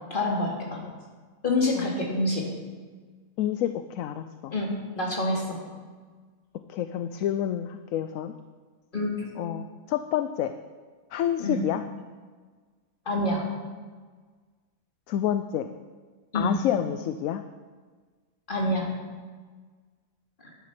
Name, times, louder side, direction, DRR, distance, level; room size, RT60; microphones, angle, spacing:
voice 1, 0.1-0.8 1.4-2.5 4.5-5.6 8.9-9.3 11.4-11.6 13.1-13.4 16.3-16.6 18.5-18.9, left 1 dB, 35° left, -1 dB, 2.5 m, -27 dB
voice 2, 3.4-4.5 6.7-8.3 9.4-10.5 11.1-11.8 15.1-15.7 16.3-17.4, left 10 dB, 70° left, 9 dB, 0.9 m, -28 dB
11.0 x 10.5 x 5.9 m, 1.5 s
omnidirectional pair, 1.6 m